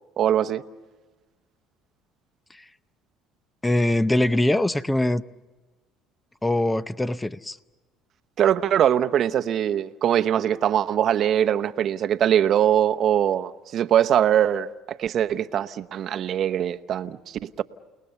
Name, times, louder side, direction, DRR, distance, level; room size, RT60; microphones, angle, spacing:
voice 1, 0.2-0.6 8.4-17.6, right 10 dB, 55° right, 0.9 m, -22 dB
voice 2, 3.6-5.2 6.4-7.6, left 1 dB, 10° left, 0.7 m, -22 dB
29.5 x 19.0 x 6.9 m
supercardioid pair, 90°, 0 cm